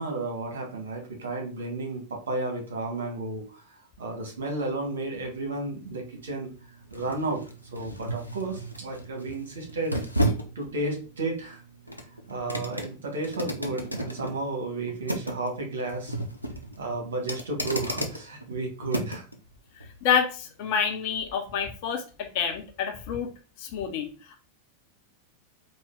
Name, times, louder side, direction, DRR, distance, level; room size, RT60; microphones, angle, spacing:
voice 1, 0.0-3.6 4.0-6.5 6.9-7.4 7.7-10.0 10.5-11.6 12.3-16.2 16.8-19.2, right 2 dB, 65° right, 1 dB, 1.5 m, -32 dB
sound 1, 4.7-19.4 19.8-19.9, right 1 dB, 90° right, 0.6 m, -34 dB
voice 2, 20.0-23.3 23.6-24.1, left 7 dB, 45° left, 4 dB, 0.9 m, -28 dB
4.4 x 2.5 x 3.6 m, 0.34 s
figure-of-eight pair, 90°, 0 cm